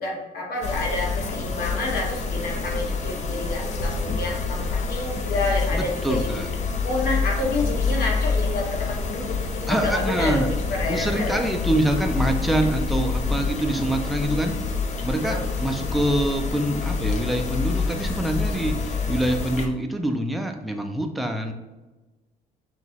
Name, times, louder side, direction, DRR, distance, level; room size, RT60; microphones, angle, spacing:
voice 1, 0.0-6.4 6.8-11.4 13.4-13.6 15.2-15.4, left 2 dB, 60° left, -1 dB, 1.5 m, -29 dB
sound 1, 0.6-19.7, left 4 dB, 45° left, 0.6 m, -27 dB
voice 2, 5.7-6.5 9.7-10.5 10.9-14.5 15.0-21.5, right 1 dB, ahead, 3 dB, 0.5 m, -25 dB
5.9 x 2.6 x 3.0 m, 1.1 s
cardioid pair, 110°, 17 cm